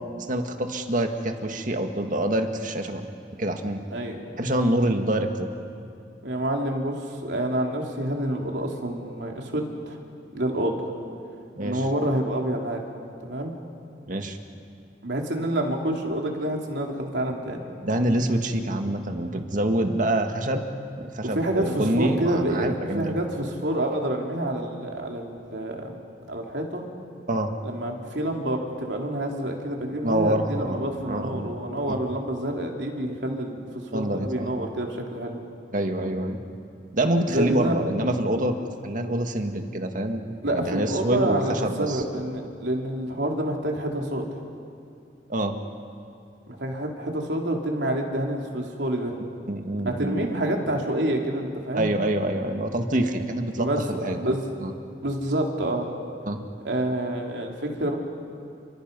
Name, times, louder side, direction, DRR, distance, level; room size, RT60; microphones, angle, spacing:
voice 1, 0.3-3.1 3.4-3.8 4.4-5.5 11.6-11.8 14.1-14.4 17.8-20.7 21.0-23.1 27.3-27.5 30.0-31.5 31.9-32.0 33.9-34.5 35.7-36.4 36.9-42.0 45.3-45.6 49.5-50.4 51.7-54.2 54.6-54.7 56.3-56.4, right 1 dB, 50° right, 5 dB, 1.9 m, -26 dB
voice 2, 6.2-10.0 10.3-10.9 11.6-12.8 13.2-13.5 15.0-17.7 21.3-26.0 26.3-26.8 27.6-35.4 37.3-37.9 40.4-44.3 46.5-49.2 49.9-51.9 53.6-54.5 55.0-55.9 56.6-58.0, right 1 dB, 85° right, 1 dB, 3.3 m, -28 dB
29.5 x 26.5 x 5.4 m, 2.5 s
head